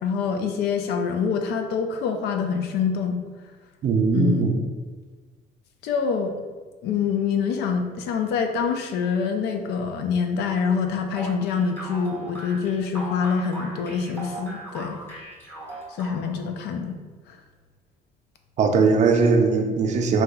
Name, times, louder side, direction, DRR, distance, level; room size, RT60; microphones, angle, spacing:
voice 1, 0.0-3.2 4.1-4.5 5.8-6.3 6.8-15.0 15.9-17.0 17.3-17.4, left 6 dB, 75° left, 5 dB, 0.4 m, -25 dB
voice 2, 3.8-4.6 18.6-20.2, right 4 dB, 45° right, 4 dB, 0.4 m, -20 dB
sound 1, 11.2-16.5, right 1 dB, 15° left, 1.4 m, -38 dB
3.8 x 2.8 x 2.3 m, 1.4 s
cardioid pair, 110°, 17 cm